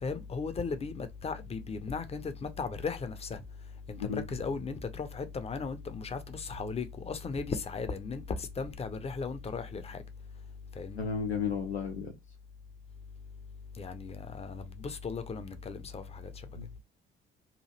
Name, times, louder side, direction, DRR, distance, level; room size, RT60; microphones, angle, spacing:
voice 1, 0.0-3.4 3.9-10.0 10.8-11.1 13.8-16.3, left 4 dB, 20° left, 0.5 m, -36 dB
voice 2, 11.0-12.1 16.5-16.8, left 6 dB, 90° left, 0.6 m, -33 dB
2.9 x 2.4 x 2.9 m
figure-of-eight pair, 50°, 31 cm